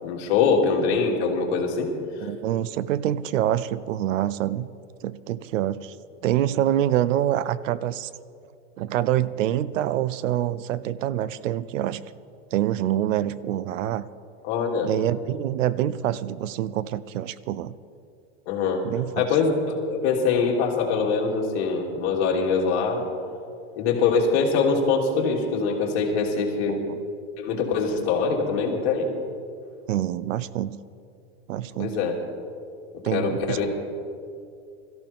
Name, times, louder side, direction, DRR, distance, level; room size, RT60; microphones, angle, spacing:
voice 1, 0.0-1.9 14.4-14.9 18.5-18.8 19.2-19.5 19.8-23.0 23.8-26.8 27.4-29.1 31.8-32.2 33.1-33.7, left 5 dB, 55° left, -1 dB, 2.9 m, -23 dB
voice 2, 2.2-4.7 5.0-5.9 6.2-8.1 8.8-12.0 12.5-14.1 14.8-17.7 18.8-19.2 26.7-27.0 29.9-30.8 31.5-32.0 33.0-33.7, right 12 dB, 80° right, 17 dB, 0.7 m, -26 dB
21.5 x 14.5 x 3.6 m, 2.5 s
supercardioid pair, 155°, 38 cm